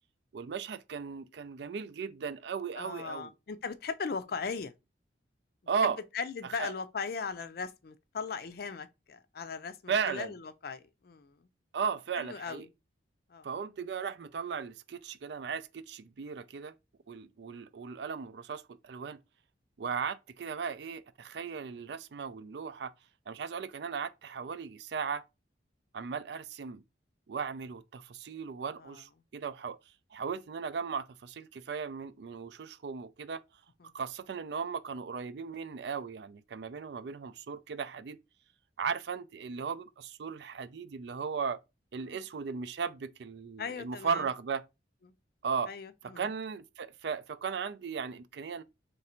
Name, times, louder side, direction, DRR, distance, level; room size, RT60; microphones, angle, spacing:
voice 1, 0.3-3.3 5.7-6.0 6.6-6.7 9.9-10.3 11.7-12.7 13.4-16.7 17.1-19.2 19.8-22.9 23.3-25.2 25.9-26.8 27.3-29.8 30.1-33.4 33.9-38.2 38.8-41.6 41.9-44.6 45.4-45.7 46.2-48.6, right 6 dB, 65° right, 0.4 m, -36 dB
voice 2, 2.8-4.7 5.8-11.5 12.2-12.7 13.3-13.5 28.8-29.0 33.8-33.9 42.0-42.2 43.6-44.3 45.1-45.2 45.7-46.3, left 5 dB, 55° left, 0.4 m, -38 dB
3.2 x 2.6 x 4.3 m
head